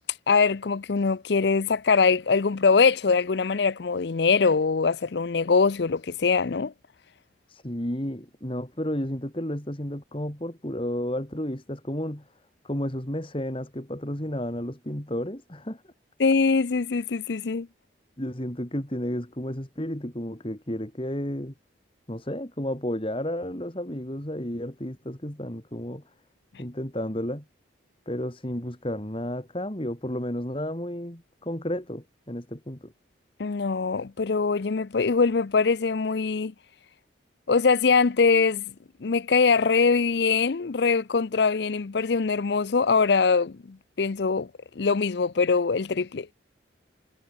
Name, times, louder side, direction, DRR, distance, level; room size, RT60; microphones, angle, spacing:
voice 1, 0.3-6.7 16.2-17.7 33.4-36.5 37.5-38.6 39.0-44.5 44.8-46.3, left 4 dB, 65° left, 0.5 m, -23 dB
voice 2, 7.5-12.3 12.6-15.8 18.2-21.5 22.1-26.0 26.6-27.4 28.1-32.9, equal, 30° left, 2.8 m, -32 dB
head